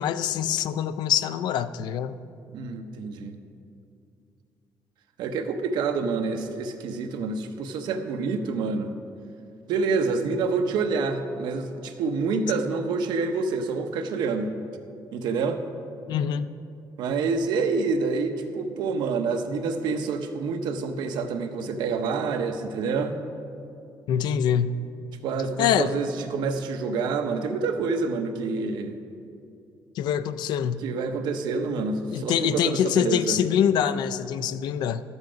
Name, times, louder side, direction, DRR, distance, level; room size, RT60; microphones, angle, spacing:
voice 1, 0.0-2.1 16.1-16.5 24.1-24.9 25.6-25.9 30.0-30.8 32.1-35.0, left 9 dB, 80° left, 13 dB, 0.4 m, -25 dB
voice 2, 2.5-3.4 5.2-8.9 9.7-14.5 15.1-15.6 17.0-23.2 25.2-29.0 30.8-33.4, right 4 dB, 85° right, 6 dB, 0.8 m, -27 dB
12.0 x 8.1 x 5.1 m, 2.6 s
cardioid pair, 175°, 7 cm